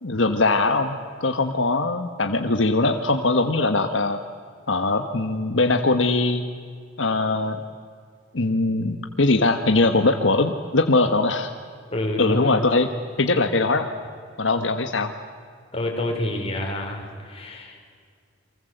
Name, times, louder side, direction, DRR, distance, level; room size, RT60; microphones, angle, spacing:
voice 1, 0.0-4.2 4.7-6.4 7.0-7.6 8.3-11.5 12.2-12.9 13.2-13.9 14.4-15.1, left 2 dB, 75° left, 6 dB, 1.5 m, -21 dB
voice 2, 11.9-12.8 15.7-17.8, left 1 dB, 30° left, 2 dB, 5.0 m, -28 dB
29.5 x 24.0 x 8.0 m, 2.1 s
head